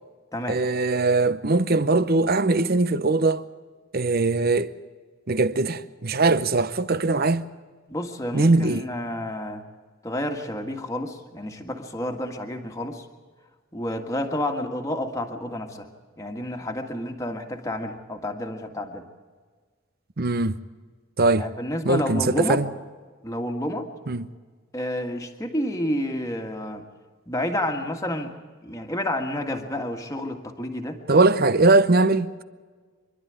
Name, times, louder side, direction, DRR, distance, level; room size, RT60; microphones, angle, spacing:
voice 1, 0.5-3.4 3.9-4.7 5.3-7.5 8.3-8.8 20.2-20.6 21.2-21.5 21.8-22.7 24.1-24.3 31.1-32.4, right 3 dB, 45° right, 0.8 m, -21 dB
voice 2, 7.9-9.6 10.0-13.0 13.7-15.9 16.2-19.0 21.4-22.6 23.2-23.9 24.7-26.9 27.3-28.3 28.6-31.0, left 1 dB, 15° left, 1.8 m, -30 dB
26.0 x 12.0 x 9.4 m
head